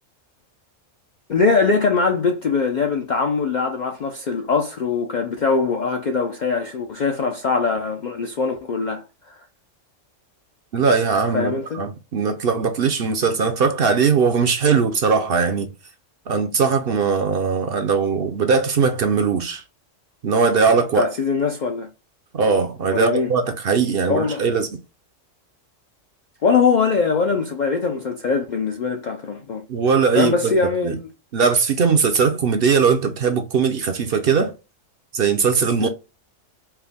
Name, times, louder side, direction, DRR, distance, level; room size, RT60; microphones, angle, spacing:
voice 1, 1.3-9.4 11.3-11.8 20.9-21.9 22.9-23.3 24.1-24.4 26.4-29.6 30.2-31.1 35.8-35.9, left 4 dB, 60° left, 0.4 m, -22 dB
voice 2, 10.7-15.7 16.3-19.6 20.2-21.1 22.3-24.7 29.7-30.5 30.8-30.9 31.3-34.5 35.1-35.9, right 5 dB, 60° right, 0.7 m, -20 dB
4.5 x 2.1 x 3.4 m
omnidirectional pair, 1.3 m